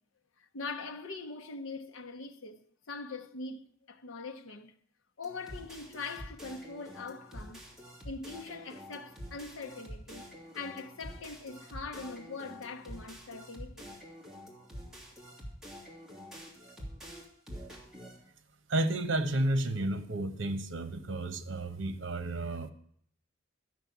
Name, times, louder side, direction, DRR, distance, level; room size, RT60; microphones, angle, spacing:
voice 1, 0.4-4.7 5.2-7.7 8.0-14.0, left 4 dB, 80° left, 0.9 m, -42 dB
sound 1, 5.2-18.2, equal, 5° right, 2.7 m, -47 dB
voice 2, 18.7-22.7, right 1 dB, 70° right, 1.0 m, -31 dB
12.5 x 6.3 x 8.4 m
head